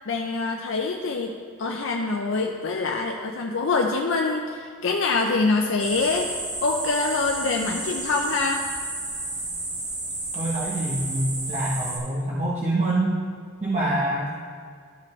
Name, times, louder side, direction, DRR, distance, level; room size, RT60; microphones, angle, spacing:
voice 1, 0.1-1.3 1.6-6.3 6.6-8.6, left 3 dB, 60° left, 1 dB, 0.5 m, -25 dB
sound 1, 5.8-12.0, right 2 dB, 85° right, 1.8 m, -32 dB
voice 2, 10.3-13.2 13.6-14.3, right 1 dB, 35° right, -6 dB, 1.0 m, -25 dB
12.5 x 5.1 x 3.2 m, 2.1 s
head